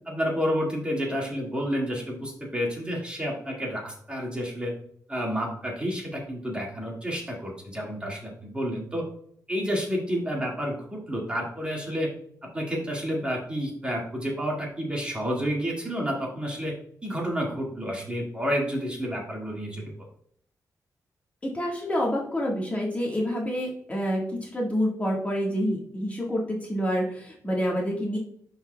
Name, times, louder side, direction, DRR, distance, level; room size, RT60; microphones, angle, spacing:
voice 1, 0.1-4.7 5.1-9.0 9.5-12.1 12.4-16.7 17.0-19.8, equal, 15° right, -2 dB, 1.8 m, -30 dB
voice 2, 21.4-28.2, equal, 20° left, -3 dB, 1.4 m, -28 dB
11.5 x 4.1 x 2.2 m, 0.64 s
wide cardioid pair, 150°, 7 cm